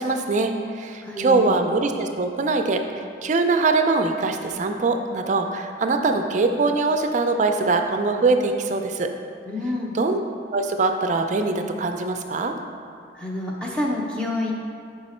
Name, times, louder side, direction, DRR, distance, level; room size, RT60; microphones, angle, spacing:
voice 1, 0.0-2.8 3.2-9.1 9.9-10.2 10.5-12.6, right 3 dB, 40° right, 6 dB, 0.4 m, -22 dB
voice 2, 1.0-1.6 9.5-9.9 13.1-14.5, left 1 dB, 5° left, -3 dB, 0.6 m, -28 dB
6.1 x 4.8 x 4.3 m, 2.3 s
head